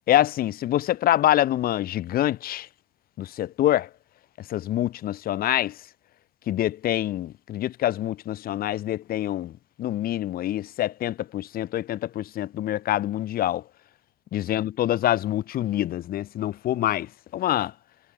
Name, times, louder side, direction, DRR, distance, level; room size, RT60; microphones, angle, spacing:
voice 1, 0.1-2.7 3.2-3.9 4.5-5.7 6.5-9.5 9.8-13.6 14.3-17.7, left 13 dB, 60° left, 5.1 m, -25 dB
supercardioid pair, 80°, 17 cm